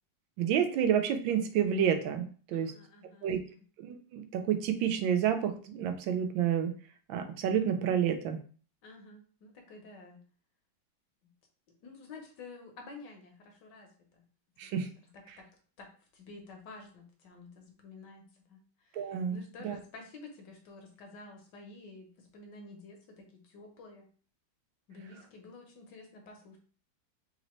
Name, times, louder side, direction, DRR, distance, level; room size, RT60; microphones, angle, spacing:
voice 1, 0.4-2.7 3.2-3.4 3.8-6.7 7.1-8.4 14.6-14.9 15.3-15.4 18.9-19.8, right 8 dB, 85° right, 7 dB, 1.3 m, -29 dB
voice 2, 2.5-3.6 8.8-10.2 11.8-13.9 14.6-14.7 15.4-15.5 15.8-18.2 18.5-18.6 18.9-19.0 19.3-24.1 24.9-26.6, left 3 dB, 65° left, 2 dB, 1.4 m, -50 dB
4.1 x 2.6 x 3.0 m, 0.42 s
omnidirectional pair, 2.1 m